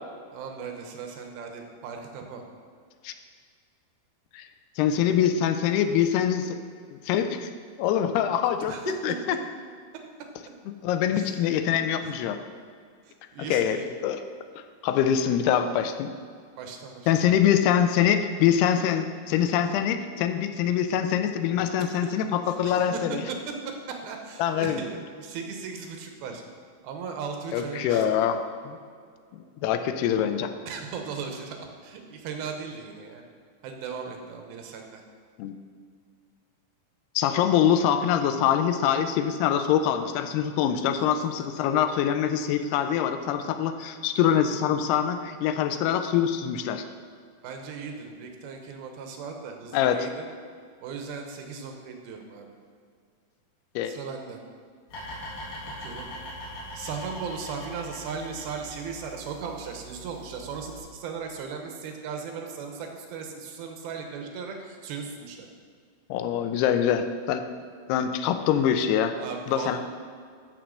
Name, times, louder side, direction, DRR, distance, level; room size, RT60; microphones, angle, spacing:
voice 1, 0.3-2.4 8.7-9.1 11.2-11.4 12.0-12.2 13.1-13.9 16.6-17.1 21.8-22.2 22.5-26.4 26.8-28.3 30.7-33.2 33.6-35.0 47.4-50.3 50.8-52.5 53.8-54.4 55.8-56.1 56.7-65.5 69.2-69.8, right 5 dB, 75° right, 4 dB, 2.7 m, -37 dB
voice 2, 4.8-6.6 6.9-7.5 7.8-9.4 10.7-12.4 13.5-14.2 14.8-16.1 17.1-23.2 24.4-24.8 27.5-28.8 29.3-30.5 35.4-35.6 37.2-46.9 49.7-50.1 53.8-53.9 66.1-67.4 67.9-69.2 69.5-69.8, left 9 dB, 85° left, 8 dB, 2.6 m, -24 dB
sound 1, 54.9-60.8, equal, 70° left, 4.7 m, -41 dB
13.5 x 4.6 x 6.3 m, 2.1 s
omnidirectional pair, 4.6 m